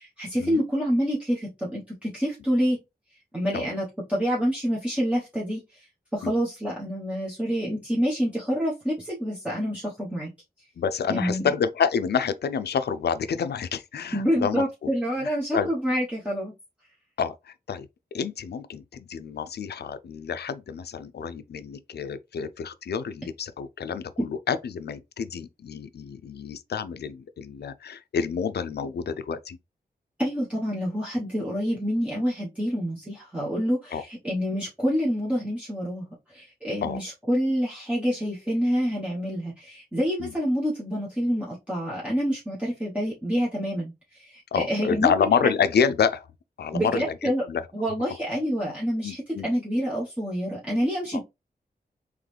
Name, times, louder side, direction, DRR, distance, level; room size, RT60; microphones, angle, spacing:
voice 1, 0.0-2.8 3.3-5.9 6.1-10.3 11.1-11.5 14.1-16.5 30.2-36.1 36.3-45.5 46.7-47.4 47.7-51.2, equal, 10° right, 1.1 m, -27 dB
voice 2, 10.8-14.9 15.2-15.7 17.2-29.6 33.9-34.0 36.8-37.0 40.2-40.3 44.5-46.3 46.6-47.6 49.0-49.5 51.1-51.2, left 7 dB, 85° left, 0.4 m, -28 dB
3.7 x 3.1 x 3.3 m
wide cardioid pair, 90°, 17 cm